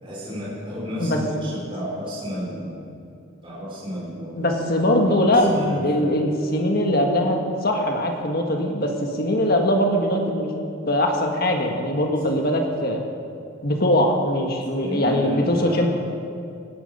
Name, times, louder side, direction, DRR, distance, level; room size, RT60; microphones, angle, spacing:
voice 1, 0.0-2.9 3.4-6.1 14.8-15.9, equal, 25° right, -8 dB, 4.6 m, -32 dB
voice 2, 4.4-10.5 10.9-13.0 13.6-15.9, left 1 dB, 50° left, 2 dB, 1.7 m, -21 dB
17.5 x 12.0 x 5.6 m, 2.5 s
head